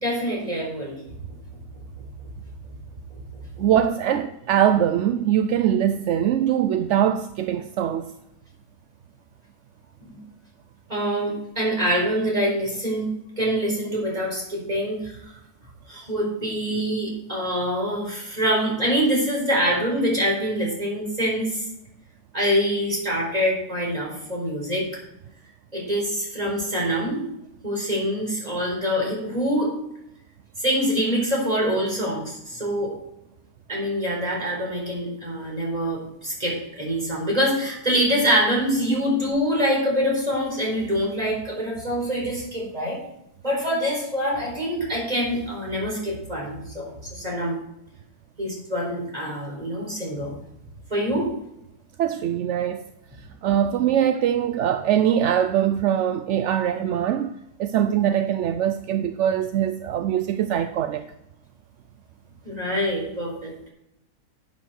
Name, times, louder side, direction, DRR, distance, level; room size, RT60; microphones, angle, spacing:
voice 1, 0.0-1.1 3.3-3.4 10.0-10.2 10.9-13.1 13.4-15.1 15.9-21.6 22.3-24.9 25.7-27.2 27.6-29.7 30.6-32.9 33.7-43.0 43.4-47.6 48.4-50.3 50.9-51.3 62.4-63.5, equal, 25° right, 4.6 m, -25 dB
voice 2, 3.6-8.1 52.0-52.8 53.4-61.1, right 10 dB, 65° right, 0.8 m, -22 dB
11.0 x 8.9 x 4.5 m
omnidirectional pair, 1.6 m